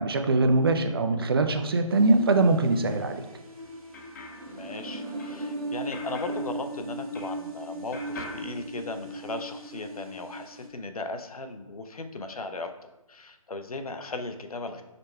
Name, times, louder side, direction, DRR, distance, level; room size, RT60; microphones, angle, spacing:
voice 1, 0.0-3.2, right 2 dB, 40° right, 7 dB, 0.4 m, -22 dB
sound 1, 1.9-10.7, right 1 dB, 75° right, 1.3 m, -38 dB
sound 2, 3.6-7.6 7.9-9.4, left 2 dB, 30° left, 0.6 m, -45 dB
voice 2, 4.5-12.7 13.1-14.8, left 2 dB, 85° left, 7 dB, 0.5 m, -37 dB
5.1 x 2.1 x 4.4 m, 0.98 s
figure-of-eight pair, 150°, 18 cm